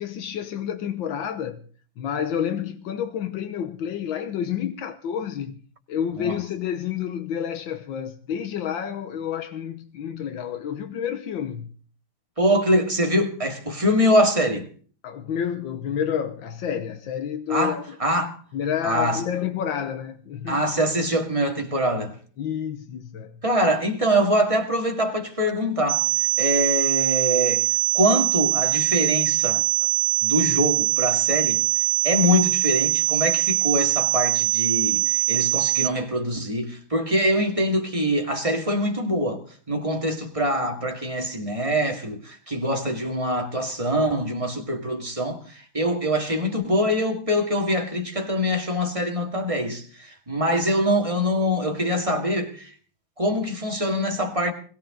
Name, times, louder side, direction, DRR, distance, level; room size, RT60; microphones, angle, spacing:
voice 1, 0.0-1.6 2.0-5.6 5.9-11.7 15.0-18.0 18.5-20.6 22.4-23.4, left 8 dB, 85° left, 1.8 m, -29 dB
voice 2, 12.4-14.7 17.5-18.4 18.8-19.2 20.5-22.1 23.4-26.0 26.4-27.6 27.9-29.6 30.2-31.6 32.0-52.7 53.2-54.5, equal, 15° right, 2.3 m, -24 dB
sound 1, 25.9-35.9, right 18 dB, 55° right, 2.0 m, -22 dB
21.0 x 17.0 x 3.9 m
omnidirectional pair, 2.1 m